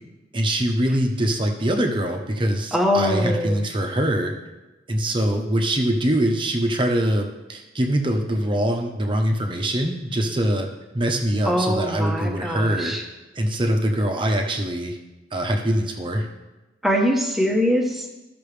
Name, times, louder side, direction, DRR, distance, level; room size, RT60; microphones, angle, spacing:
voice 1, 0.3-4.3 4.9-10.7 10.9-13.0 13.3-15.0 15.3-16.3, right 1 dB, 25° right, 3 dB, 0.9 m, -23 dB
voice 2, 2.7-3.6 11.4-13.0 16.8-18.1, equal, ahead, 0 dB, 1.0 m, -22 dB
14.0 x 6.0 x 3.4 m, 1.1 s
head